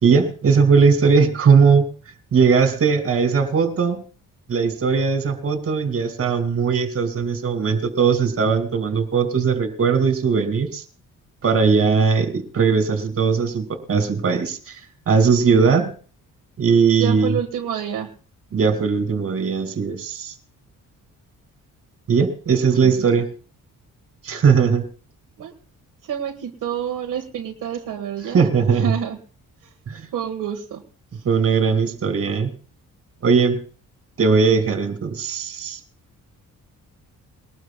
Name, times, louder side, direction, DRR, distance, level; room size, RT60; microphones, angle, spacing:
voice 1, 0.0-1.9 2.3-4.0 4.5-10.8 11.4-14.8 15.1-15.9 16.6-17.4 18.5-20.3 22.1-23.3 24.2-24.9 28.2-28.9 29.9-30.0 31.2-32.5 33.2-33.6 34.2-35.8, right 5 dB, 45° right, 6 dB, 2.6 m, -19 dB
voice 2, 17.0-18.1 22.8-23.0 25.4-25.5 26.0-28.4 28.7-29.2 30.1-30.8, right 9 dB, 75° right, 3 dB, 1.7 m, -28 dB
21.0 x 19.5 x 2.3 m, 0.38 s
wide cardioid pair, 160°, 32 cm